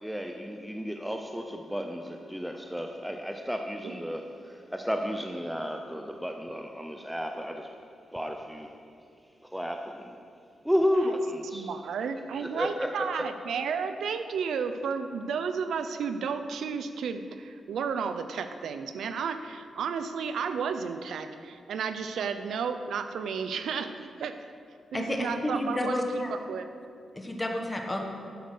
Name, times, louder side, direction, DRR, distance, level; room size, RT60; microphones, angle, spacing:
voice 1, 0.0-7.7 8.1-8.7 9.4-10.2 10.6-11.7 12.4-13.3, equal, ahead, 4 dB, 0.6 m, -32 dB
voice 2, 11.5-24.3 24.9-26.2 26.5-26.7, right 6 dB, 85° right, 9 dB, 0.6 m, -32 dB
voice 3, 24.9-26.3 27.1-28.0, left 1 dB, 15° left, 2 dB, 1.3 m, -30 dB
11.5 x 9.3 x 6.2 m, 2.3 s
wide cardioid pair, 130°, 0 cm